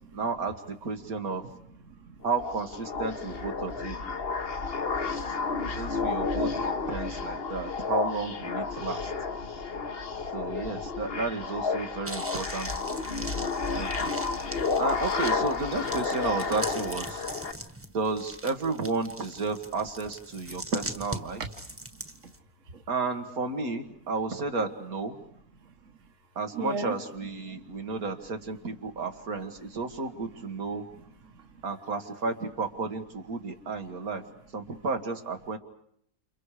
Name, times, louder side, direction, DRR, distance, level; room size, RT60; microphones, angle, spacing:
voice 1, 0.1-1.4 2.2-4.2 5.0-5.4 5.8-9.1 10.3-12.7 13.0-13.3 13.7-14.2 14.8-17.3 17.9-21.4 22.9-25.2 26.4-30.9 31.6-34.2 34.5-35.6, right 4 dB, 85° right, 5 dB, 2.3 m, -32 dB
voice 2, 1.5-2.2 22.0-22.1 22.7-22.8 25.6-25.9 26.5-27.0 27.5-28.0 31.2-31.6, right 3 dB, 60° right, 5 dB, 1.9 m, -39 dB
sound 1, 2.2-17.5, left 4 dB, 45° left, 1.4 m, -31 dB
sound 2, 12.0-22.4, right 1 dB, 10° right, 1.4 m, -41 dB
29.5 x 29.5 x 5.0 m, 0.70 s
omnidirectional pair, 1.5 m